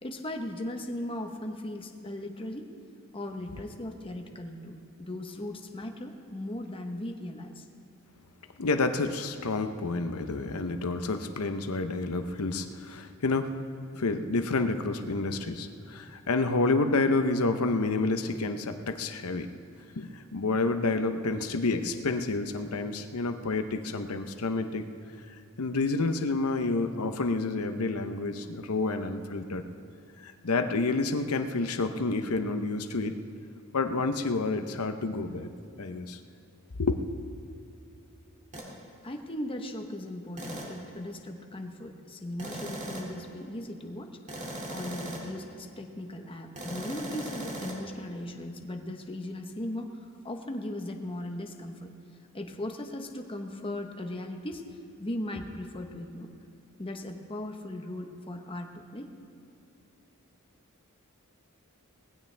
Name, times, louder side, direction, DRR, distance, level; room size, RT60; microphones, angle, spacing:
voice 1, 0.0-2.7 3.1-7.7 39.0-51.9 52.3-56.3 56.8-59.1, left 1 dB, 25° left, 4 dB, 1.0 m, -38 dB
voice 2, 8.6-13.5 13.9-19.5 20.0-24.8 25.6-29.6 30.2-33.1 33.7-35.5 35.8-36.2 36.8-37.0, left 3 dB, 80° left, 7 dB, 0.8 m, -29 dB
sound 1, 38.5-38.7 40.4-40.8 42.4-43.2 44.3-45.4 46.6-47.8, right 1 dB, 35° right, 2.3 m, -38 dB
19.5 x 16.0 x 3.4 m, 2.7 s
head